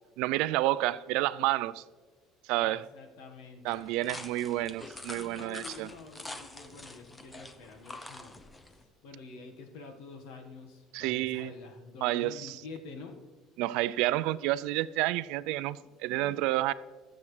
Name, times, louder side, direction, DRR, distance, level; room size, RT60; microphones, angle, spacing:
voice 1, 0.2-1.8 2.4-2.9 3.6-5.9 10.9-11.5 12.0-12.6 13.6-16.7, right 16 dB, 75° right, 0.3 m, -30 dB
voice 2, 2.6-3.9 5.1-8.4 8.7-13.2 15.7-16.5, left 4 dB, 75° left, 1.5 m, -48 dB
sound 1, 3.7-8.8, left 2 dB, 10° left, 0.6 m, -46 dB
21.5 x 7.1 x 3.3 m
cardioid pair, 160°, 0 cm